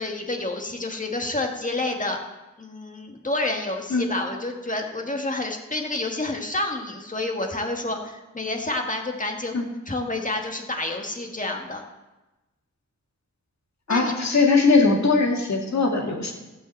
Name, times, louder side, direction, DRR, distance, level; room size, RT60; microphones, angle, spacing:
voice 1, 0.0-2.2 2.6-11.8 13.9-14.1, left 2 dB, 25° left, 2 dB, 1.6 m, -29 dB
voice 2, 13.9-16.3, left 3 dB, 60° left, 0 dB, 2.4 m, -20 dB
15.0 x 5.2 x 7.6 m, 1.1 s
wide cardioid pair, 95°, 30 cm